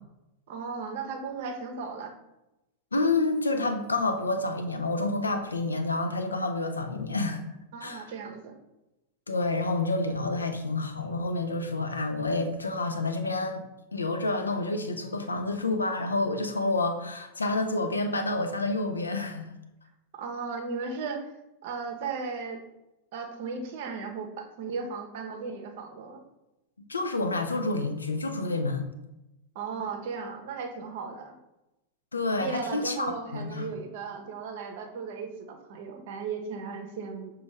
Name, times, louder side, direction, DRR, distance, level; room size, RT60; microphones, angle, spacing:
voice 1, 0.5-2.1 7.7-8.5 20.1-21.3 21.6-22.6 23.1-26.3 29.5-31.4 32.4-37.3, right 5 dB, 50° right, 4 dB, 0.6 m, -36 dB
voice 2, 2.9-7.4 7.8-8.1 9.3-13.6 13.9-19.5 26.9-28.9 32.1-33.7, left 2 dB, 75° left, 5 dB, 0.4 m, -29 dB
6.0 x 2.3 x 3.1 m, 0.94 s
figure-of-eight pair, 90°, 0 cm